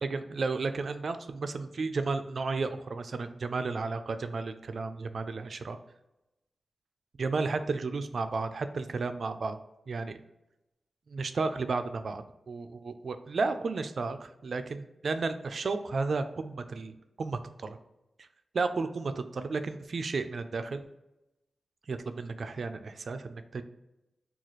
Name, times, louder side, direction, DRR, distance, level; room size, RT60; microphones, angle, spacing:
voice 1, 0.0-5.8 7.2-9.6 9.9-10.2 11.1-17.8 18.5-20.8 21.9-23.6, right 4 dB, 55° right, 9 dB, 0.3 m, -33 dB
4.0 x 2.3 x 3.0 m, 0.92 s
wide cardioid pair, 135°, 0 cm